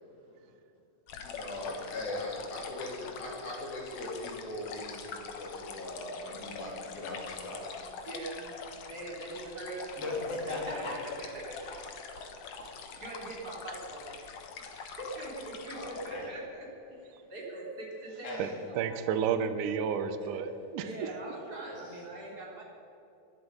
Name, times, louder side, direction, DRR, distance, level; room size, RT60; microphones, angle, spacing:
voice 1, 0.1-0.5 8.0-10.1 10.7-11.6 12.8-14.1 14.5-19.2 20.2-20.3 20.8-22.6, right 2 dB, 25° right, -4 dB, 3.6 m, -42 dB
voice 2, 1.1-7.6 8.0-8.1 10.0-10.9 14.2-14.3 15.7-16.3 18.2-18.6 21.7-22.0, left 2 dB, 85° left, -3 dB, 5.3 m, -39 dB
sound 1, 1.1-16.1, left 6 dB, 60° left, 2.2 m, -44 dB
voice 3, 18.7-21.1, right 7 dB, 75° right, 9 dB, 2.2 m, -31 dB
21.5 x 11.0 x 5.4 m, 2.9 s
omnidirectional pair, 4.0 m